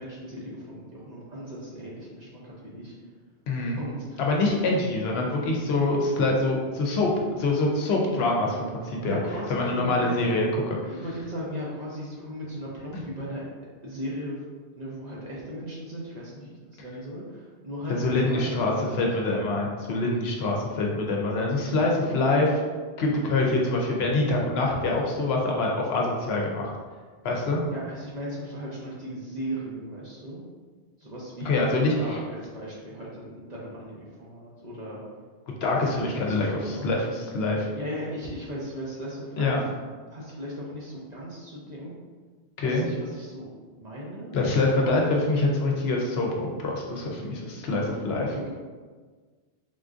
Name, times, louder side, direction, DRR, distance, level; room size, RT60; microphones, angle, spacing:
voice 1, 0.0-2.9 3.8-4.2 9.0-10.2 10.8-13.4 13.8-14.4 14.8-19.0 27.7-30.4 31.0-31.7 32.0-35.0 36.0-37.0 37.7-39.6 40.1-41.9 42.6-44.3 44.8-45.1 48.3-48.5, equal, 50° right, -6 dB, 0.6 m, -37 dB
voice 2, 3.5-3.8 4.2-8.6 8.8-9.2 9.5-10.8 17.9-22.6 23.0-26.7 27.2-27.6 31.4-32.2 35.5-37.7 39.4-39.6 42.6-42.9 44.3-48.3, left 2 dB, 70° left, -1 dB, 0.8 m, -25 dB
3.7 x 2.5 x 2.4 m, 1.5 s
omnidirectional pair, 1.2 m